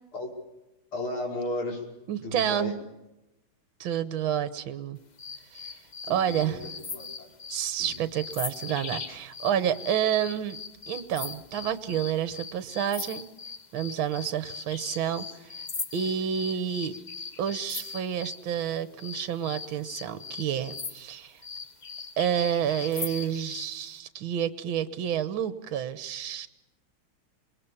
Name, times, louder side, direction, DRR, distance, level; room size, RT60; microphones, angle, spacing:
voice 1, 0.9-1.8 2.2-2.7 6.0-6.6 6.9-7.3 7.8-8.0, left 2 dB, 85° left, -1 dB, 6.2 m, -34 dB
voice 2, 2.1-2.8 3.8-5.0 5.5-5.8 6.1-6.6 7.5-10.6 10.9-13.3 13.7-15.6 15.9-16.9 17.4-21.4 22.2-26.5, right 9 dB, 70° right, 13 dB, 1.9 m, -29 dB
sound 1, 5.2-18.4 19.0-23.7, left 5 dB, 35° left, 0.7 m, -40 dB
27.5 x 21.5 x 7.2 m, 0.96 s
omnidirectional pair, 2.3 m